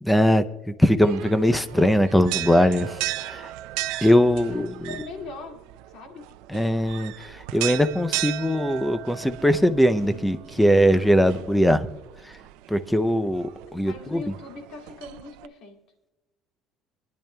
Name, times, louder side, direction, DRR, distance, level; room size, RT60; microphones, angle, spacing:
voice 1, 0.0-3.5 4.0-4.7 6.5-11.9 12.2-12.4 12.7-14.2, equal, 5° left, 10 dB, 0.5 m, -21 dB
sound 1, 1.0-15.5, right 16 dB, 85° right, 0.4 m, -36 dB
voice 2, 4.4-6.3 13.8-15.8, left 4 dB, 50° left, 3 dB, 2.1 m, -40 dB
24.5 x 10.5 x 2.2 m, 1.1 s
cardioid pair, 170°, 0 cm